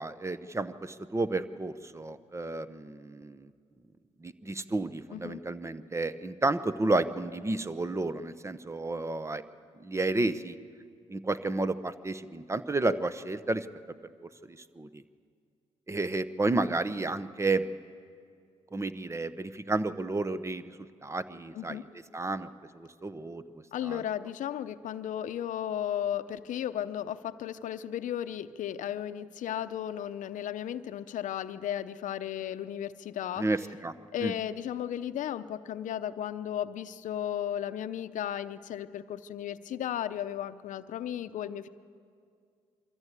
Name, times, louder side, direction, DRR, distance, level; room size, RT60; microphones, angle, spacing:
voice 1, 0.0-3.5 4.2-9.4 9.8-10.6 11.1-13.7 14.5-15.0 15.9-17.7 18.7-20.7 21.0-21.8 22.1-22.5 22.7-24.0 33.4-33.9 34.2-34.3, right 2 dB, 20° right, 13 dB, 0.9 m, -31 dB
voice 2, 5.1-5.4 21.5-21.8 23.7-33.5 34.1-41.7, left 10 dB, 75° left, 12 dB, 0.7 m, -35 dB
24.0 x 14.0 x 8.3 m, 2.3 s
supercardioid pair, 65°, 13 cm